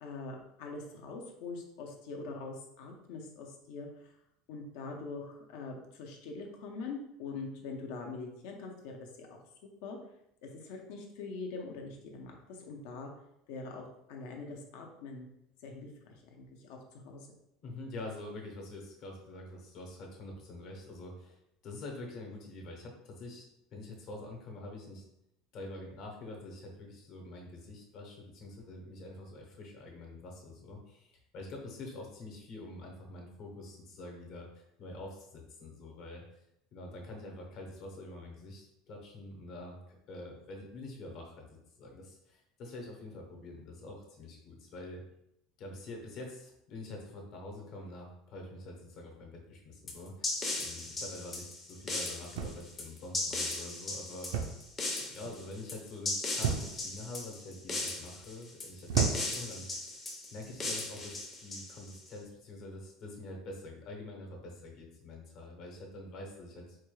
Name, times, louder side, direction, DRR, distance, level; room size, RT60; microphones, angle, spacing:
voice 1, 0.0-4.1 4.5-9.3 9.8-10.0 10.4-13.1 13.5-15.3 15.6-17.3, left 3 dB, 70° left, 2 dB, 0.7 m, -43 dB
voice 2, 17.6-23.4 23.7-25.0 25.5-36.2 36.7-45.0 45.6-50.3 50.6-54.3 55.1-59.9 60.3-66.8, left 2 dB, 45° left, 1 dB, 0.8 m, -46 dB
sound 1, 49.9-62.1, left 2 dB, 20° left, 0.6 m, -37 dB
sound 2, 52.3-52.9 54.3-54.7 55.0-55.4 56.4-57.0 57.7-58.1 58.9-59.5 60.5-60.7, right 7 dB, 80° right, 0.4 m, -33 dB
4.1 x 2.3 x 3.2 m, 0.81 s
cardioid pair, 170°, 0 cm